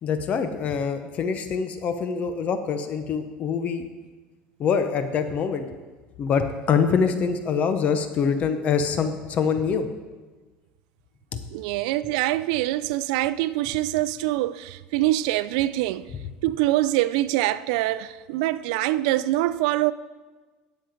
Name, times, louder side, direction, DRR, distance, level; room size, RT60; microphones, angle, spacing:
voice 1, 0.0-3.8 4.6-5.7 6.2-9.9 11.3-11.4, left 6 dB, 35° left, 0.7 m, -24 dB
voice 2, 11.5-16.1 16.4-19.9, right 16 dB, 80° right, 0.4 m, -24 dB
10.5 x 7.6 x 5.0 m
cardioid pair, 145°, 4 cm